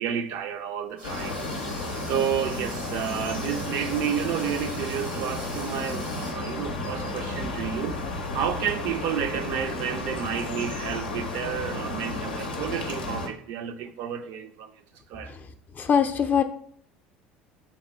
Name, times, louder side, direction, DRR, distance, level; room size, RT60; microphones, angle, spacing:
voice 1, 0.0-8.0 8.3-14.7 15.1-15.3, right 9 dB, 60° right, 0.4 m, -31 dB
sound 1, 1.0-13.3, left 2 dB, 90° left, 0.5 m, -33 dB
sound 2, 1.0-6.3, right 2 dB, 90° right, 0.9 m, -43 dB
voice 2, 15.8-16.4, left 7 dB, 35° left, 0.4 m, -21 dB
3.5 x 2.2 x 4.1 m
hypercardioid pair, 70°, 5 cm